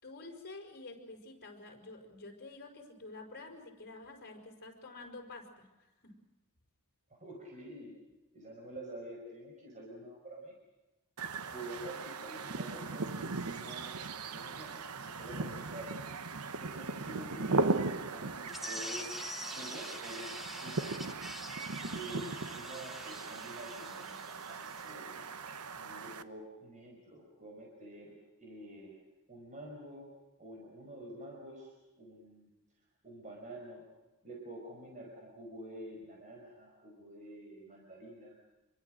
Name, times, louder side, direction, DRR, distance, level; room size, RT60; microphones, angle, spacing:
voice 1, 0.0-6.2, left 2 dB, 45° left, 3 dB, 5.7 m, -49 dB
voice 2, 7.1-7.9 8.3-10.5 11.5-13.9 14.3-15.9 16.6-19.1 19.5-21.1 21.8-25.2 25.8-29.0 29.3-30.1 30.4-32.5 33.0-33.8 34.2-38.3, right 1 dB, 35° right, 0 dB, 5.4 m, -48 dB
sound 1, 11.2-26.2, right 3 dB, 80° right, 1.1 m, -38 dB
sound 2, 18.5-24.9, left 1 dB, ahead, 1.9 m, -46 dB
28.0 x 22.5 x 6.5 m, 1.1 s
head